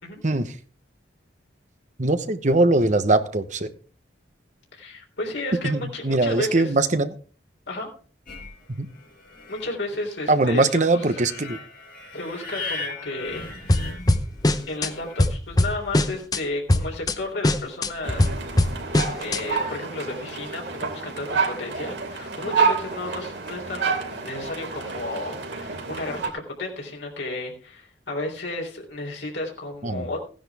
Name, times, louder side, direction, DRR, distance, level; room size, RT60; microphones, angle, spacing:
voice 1, 2.0-3.7 5.6-7.1 8.8-8.9 10.3-11.6 29.8-30.1, right 2 dB, 40° right, 10 dB, 1.0 m, -21 dB
voice 2, 4.8-6.8 7.7-7.9 9.5-11.0 12.1-13.9 14.7-18.3 18.6-18.7 19.1-26.3 26.6-30.2, left 2 dB, 85° left, 0 dB, 3.5 m, -33 dB
sound 1, 8.3-15.2, left 3 dB, 50° left, 6.2 m, -38 dB
sound 2, 13.7-14.9 15.2-16.4 16.7-17.1 17.4-19.4, left 1 dB, 20° left, 0.7 m, -21 dB
sound 3, 18.0-26.3, right 5 dB, 85° right, 2.9 m, -29 dB
15.5 x 10.5 x 3.5 m, 0.39 s
head